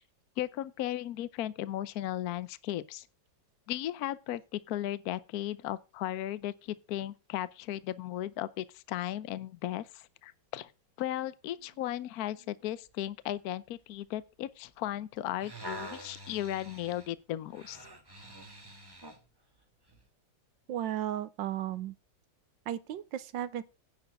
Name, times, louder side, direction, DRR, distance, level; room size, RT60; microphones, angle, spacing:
voice 1, 0.4-3.1 3.7-10.7 11.0-17.9, left 13 dB, 65° left, 1.0 m, -36 dB
sound 1, 15.2-19.2 19.9-20.0, right 1 dB, 15° right, 1.5 m, -46 dB
voice 2, 20.7-21.9 22.7-23.6, right 11 dB, 75° right, 1.4 m, -34 dB
10.5 x 4.5 x 7.7 m
omnidirectional pair, 2.1 m